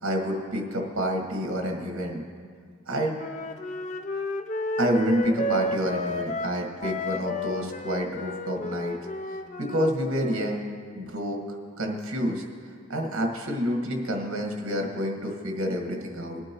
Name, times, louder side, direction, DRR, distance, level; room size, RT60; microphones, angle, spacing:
voice 1, 0.0-2.2 2.9-3.2 4.8-9.0 9.6-10.7 10.9-11.4 11.8-12.4 12.9-16.4, equal, 65° right, 1 dB, 1.8 m, -28 dB
Wind instrument woodwind instrument, 3.1-10.6, left 1 dB, 35° left, 0.4 m, -32 dB
21.5 x 9.0 x 3.1 m, 2.1 s
head